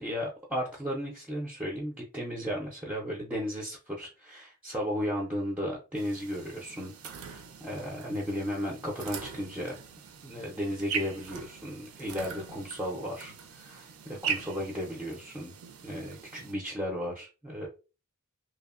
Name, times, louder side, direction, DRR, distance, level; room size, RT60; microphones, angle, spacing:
voice 1, 0.0-9.7 10.2-15.5 15.8-17.7, equal, 10° right, -2 dB, 0.4 m, -35 dB
sound 1, 5.9-16.5, right 6 dB, 70° right, 0.4 m, -41 dB
2.8 x 2.0 x 2.3 m, 0.32 s
head